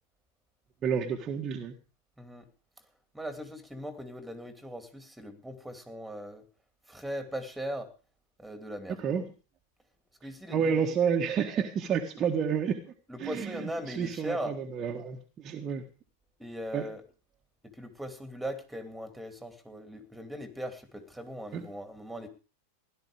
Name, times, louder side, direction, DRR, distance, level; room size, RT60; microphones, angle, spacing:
voice 1, 0.8-1.7 9.0-9.2 10.5-12.8 13.2-15.8 16.7-16.9 21.5-21.6, right 7 dB, 25° right, 3 dB, 1.6 m, -30 dB
voice 2, 2.2-2.5 3.1-6.4 6.9-7.9 8.4-9.2 10.2-10.8 13.1-14.6 16.4-17.0 17.6-22.3, equal, 5° right, 9 dB, 2.9 m, -39 dB
16.5 x 12.0 x 5.0 m, 0.36 s
figure-of-eight pair, 90°, 0 cm